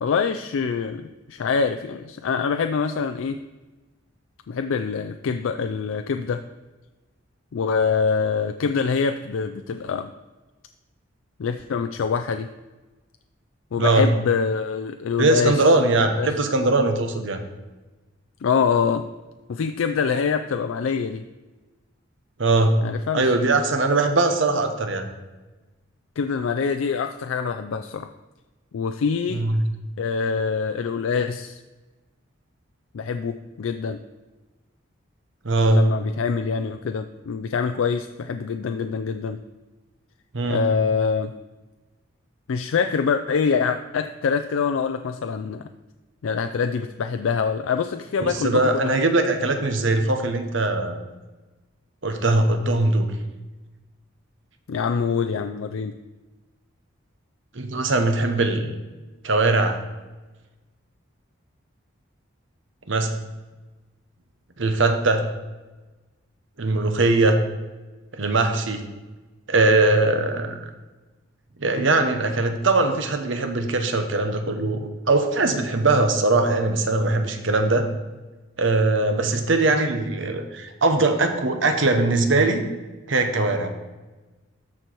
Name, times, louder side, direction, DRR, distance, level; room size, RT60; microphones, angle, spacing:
voice 1, 0.0-3.4 4.5-6.4 7.5-10.1 11.4-12.5 13.7-15.7 16.2-16.3 18.4-19.0 19.5-21.2 22.8-23.4 26.2-28.1 28.7-29.4 30.0-31.6 32.9-34.0 35.7-39.4 40.4-41.3 42.5-45.7 46.2-48.9 54.7-55.9, left 5 dB, 75° left, 7 dB, 0.4 m, -25 dB
voice 2, 13.8-14.1 15.2-17.4 22.4-22.8 23.1-25.1 29.3-29.6 35.4-35.9 40.3-40.7 48.2-51.0 52.0-53.1 57.5-58.7 59.2-59.8 62.9-63.1 64.6-65.3 66.6-67.4 68.1-68.8 69.5-70.6 71.6-77.9 78.6-82.6 83.1-83.7, right 2 dB, 65° right, 6 dB, 1.0 m, -21 dB
13.5 x 4.6 x 4.5 m, 1.2 s
head